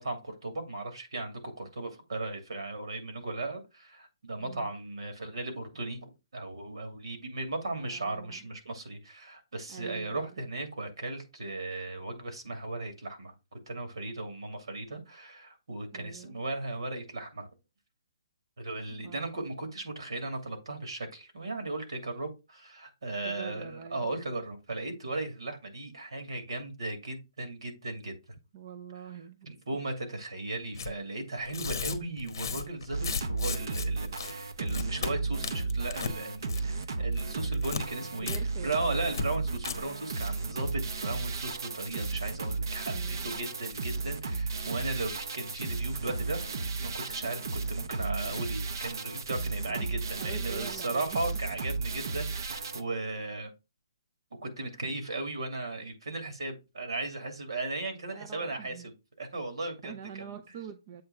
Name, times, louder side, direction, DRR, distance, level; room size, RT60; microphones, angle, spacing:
voice 1, 0.0-17.5 18.6-28.2 29.1-29.2 29.5-38.3 38.6-53.5 54.4-58.9 59.2-60.4, right 2 dB, 80° right, 2.5 m, -36 dB
voice 2, 4.4-4.7 7.8-8.5 9.7-10.3 15.9-16.4 19.0-19.5 23.2-24.1 28.5-29.5 38.0-39.0 42.9-43.4 49.6-51.2 58.1-58.9 59.8-61.0, right 7 dB, 20° right, 0.4 m, -45 dB
Tearing, 30.7-30.9 31.4-33.9 34.2-34.3 34.7-35.1 35.4-36.2 36.4-36.8 37.1-37.8 38.3-38.4 38.7-38.8 39.1-39.2 39.6-39.7, left 5 dB, 45° left, 1.0 m, -35 dB
sound 1, 32.9-52.8, right 3 dB, 50° right, 0.7 m, -34 dB
7.7 x 3.3 x 5.8 m
hypercardioid pair, 180°, 3 cm